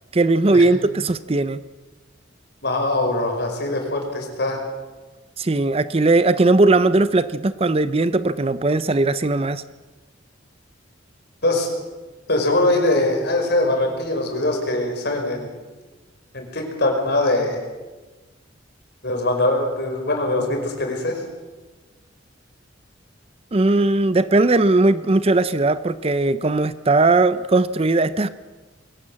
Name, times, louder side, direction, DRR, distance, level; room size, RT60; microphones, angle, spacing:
voice 1, 0.1-1.6 5.4-9.6 23.5-28.3, right 2 dB, 30° right, 14 dB, 0.6 m, -18 dB
voice 2, 2.6-4.6 11.4-11.7 12.3-15.5 16.3-17.6 19.0-21.2, left 2 dB, 55° left, 3 dB, 5.1 m, -22 dB
22.5 x 17.0 x 7.5 m, 1.2 s
head